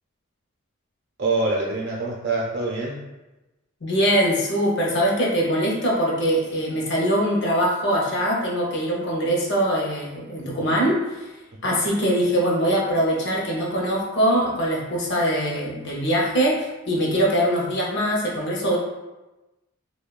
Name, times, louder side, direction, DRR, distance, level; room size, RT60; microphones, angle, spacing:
voice 1, 1.2-3.0 10.6-10.7 11.6-11.7, right 2 dB, 50° right, -4 dB, 0.5 m, -25 dB
voice 2, 3.8-11.3 11.6-18.8, equal, 55° left, -2 dB, 0.6 m, -22 dB
2.9 x 2.2 x 2.2 m, 1.1 s
head